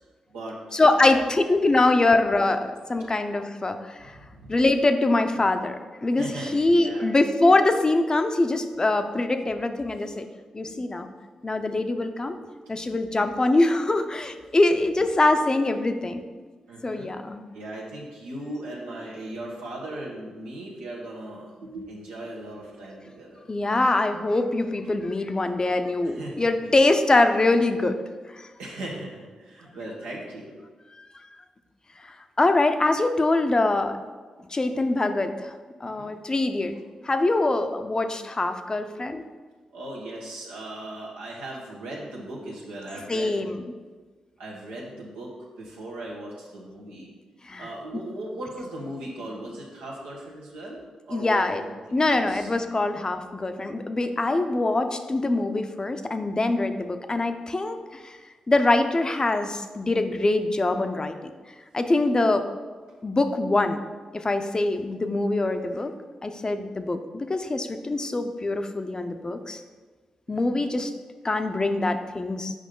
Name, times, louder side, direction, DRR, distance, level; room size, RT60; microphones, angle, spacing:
voice 1, 0.7-4.1 4.5-5.8 6.0-10.3 10.5-11.1 11.4-12.4 12.7-16.2 16.8-17.4 23.5-28.0 28.3-28.5 32.0-33.9 34.5-35.5 35.8-36.7 37.0-39.2 43.1-43.6 47.5-47.7 51.1-51.6 51.9-58.2 58.5-61.2 61.7-62.4 63.0-63.8 64.1-65.9 66.2-69.6 70.3-70.9 71.2-72.5, left 2 dB, 35° left, 8 dB, 0.6 m, -23 dB
voice 2, 4.0-4.6 5.3-5.4 6.2-7.1 10.6-10.8 12.6-13.0 16.7-17.1 17.5-23.4 26.0-26.5 28.6-30.6 35.8-36.1 39.7-43.4 44.4-47.1 47.6-50.8 51.1-52.6 70.3-70.7, right 1 dB, 90° right, -4 dB, 1.2 m, -38 dB
6.3 x 5.2 x 3.8 m, 1.4 s
supercardioid pair, 40°, 2 cm